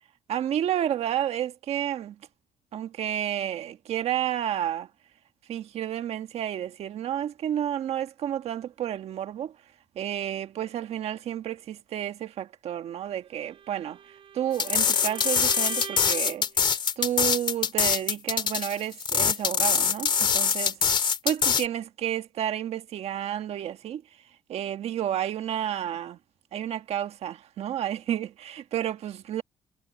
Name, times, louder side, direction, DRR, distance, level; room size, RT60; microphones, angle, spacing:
voice 1, 0.3-2.2 2.7-4.9 5.5-9.5 9.9-16.5 17.0-20.7 21.2-24.0 24.5-26.2 26.5-29.4, right 11 dB, 65° right, 1.5 m, -31 dB
Bowed string instrument, 13.4-16.4, right 8 dB, 50° right, 4.2 m, -42 dB
sound 1, 14.5-21.7, left 6 dB, 45° left, 2.4 m, -24 dB
cardioid pair, 120°, 11 cm